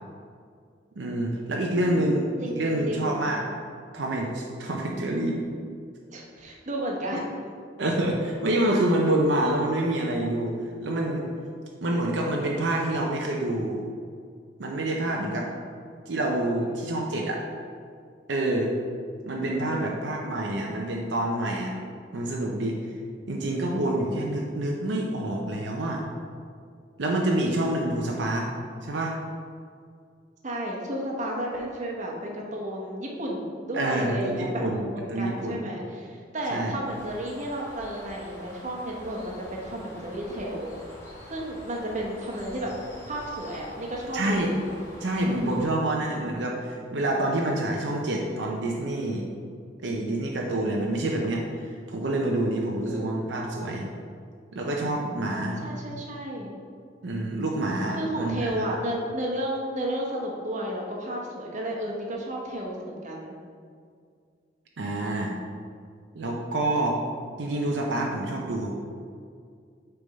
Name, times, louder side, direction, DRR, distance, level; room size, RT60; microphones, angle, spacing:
voice 1, 1.0-2.3 2.5-3.4 3.9-5.4 7.8-11.3 11.8-13.8 14.6-15.5 16.1-17.4 18.3-18.7 19.3-21.7 22.1-22.8 23.3-26.0 27.0-28.5 28.8-29.1 33.7-35.6 36.5-36.7 44.1-44.5 45.0-49.3 49.8-53.9 54.5-55.7 57.0-58.7 64.8-65.3 66.2-67.0 67.4-68.7, right 1 dB, 75° right, -1 dB, 0.6 m, -27 dB
voice 2, 1.7-3.2 6.1-7.3 19.7-19.9 30.4-40.7 41.3-42.7 43.1-44.5 52.8-53.3 55.6-56.5 58.0-63.3, right 1 dB, 40° right, -2 dB, 1.0 m, -32 dB
Bird, 36.9-45.7, left 1 dB, 15° left, 1.6 m, -46 dB
6.7 x 3.5 x 5.2 m, 2.2 s
head